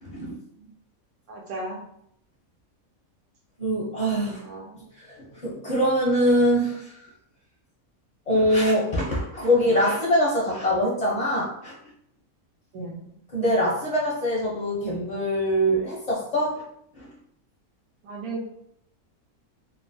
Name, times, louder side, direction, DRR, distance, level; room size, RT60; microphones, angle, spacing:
voice 1, 0.0-0.4 3.6-4.4 4.7-7.1 8.3-11.7 13.3-16.6 16.9-17.1, equal, 45° left, -6 dB, 0.5 m, -23 dB
voice 2, 1.3-1.8 4.2-4.7 12.7-13.1 18.0-18.4, right 2 dB, 80° right, -2 dB, 1.3 m, -35 dB
3.0 x 2.1 x 2.6 m, 0.73 s
omnidirectional pair, 1.5 m